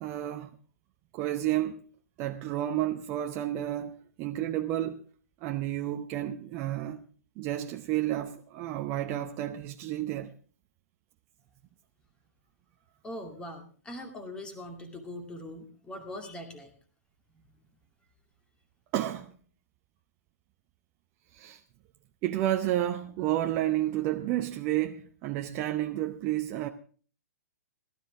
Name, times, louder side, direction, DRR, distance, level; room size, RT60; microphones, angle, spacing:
voice 1, 0.0-0.5 1.1-1.8 2.2-5.0 5.4-7.0 7.4-10.3 18.9-19.3 21.3-21.6 22.2-26.7, right 13 dB, 30° right, 0.7 m, -31 dB
voice 2, 13.0-16.7 17.3-17.7, left 1 dB, 10° left, 2.3 m, -42 dB
16.5 x 13.0 x 3.6 m
figure-of-eight pair, 115°, 8 cm